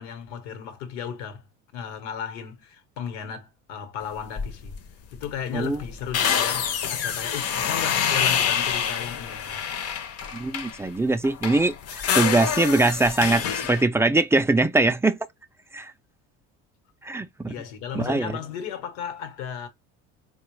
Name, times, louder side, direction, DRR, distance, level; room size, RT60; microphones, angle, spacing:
voice 1, 0.0-1.5 1.7-4.8 5.1-9.7 17.5-19.7, left 8 dB, 80° left, 1.1 m, -35 dB
Freezer Door in Garage, 4.4-4.8 5.1-5.3 5.6-10.8 11.2-13.9, left 8 dB, 45° left, 0.7 m, -26 dB
voice 2, 10.3-15.2 15.7-15.9 17.0-17.5 17.9-18.3, right 2 dB, 10° right, 0.4 m, -22 dB
4.3 x 2.3 x 3.0 m
supercardioid pair, 85°, 35 cm